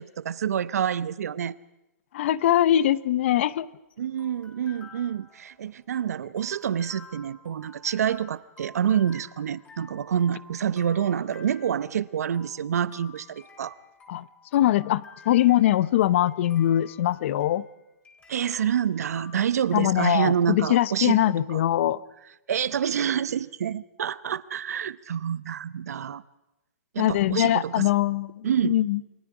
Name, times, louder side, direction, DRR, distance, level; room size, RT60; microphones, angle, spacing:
voice 1, 0.0-1.6 4.0-13.8 18.3-21.2 21.5-21.6 22.5-26.2 26.9-27.9 28.4-28.8, right 9 dB, 75° right, 16 dB, 0.9 m, -27 dB
voice 2, 2.1-3.7 14.1-14.3 14.5-17.6 19.7-22.0 27.0-29.0, left 13 dB, 50° left, 18 dB, 0.8 m, -22 dB
sound 1, 3.2-19.9, left 4 dB, 15° left, 3.7 m, -51 dB
29.0 x 21.5 x 4.9 m, 0.95 s
hypercardioid pair, 155°, 8 cm